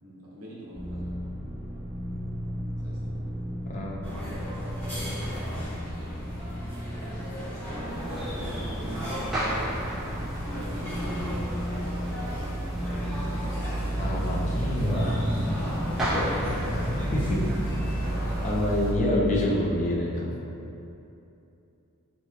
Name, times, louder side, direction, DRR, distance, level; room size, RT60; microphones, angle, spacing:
voice 1, 0.0-1.2 2.8-3.3 7.4-10.6 11.0-11.2, right 1 dB, 70° right, -7 dB, 0.8 m, -43 dB
sound 1, 0.7-19.4, right 1 dB, 40° right, 1.3 m, -33 dB
voice 2, 3.7-4.1 13.9-15.3 16.0-17.6 18.4-20.3, left 1 dB, 35° left, -3 dB, 0.3 m, -28 dB
sound 2, 4.0-18.5, equal, 15° left, 1.3 m, -38 dB
sound 3, 7.9-18.9, equal, ahead, 0.7 m, -33 dB
4.0 x 2.3 x 2.3 m, 2.8 s
head